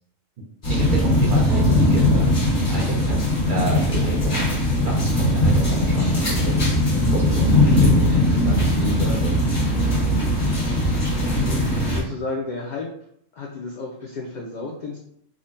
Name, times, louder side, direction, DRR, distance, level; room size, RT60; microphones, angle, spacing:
sound 1, 0.6-12.0, left 1 dB, 40° left, 1.3 m, -19 dB
voice 1, 0.7-3.2 3.5-4.5 4.8-6.6 7.1-9.3, right 2 dB, 50° right, -2 dB, 0.6 m, -30 dB
voice 2, 11.3-12.9 13.3-15.0, left 3 dB, 85° left, -2 dB, 0.4 m, -32 dB
3.7 x 2.1 x 2.6 m, 0.68 s
omnidirectional pair, 1.3 m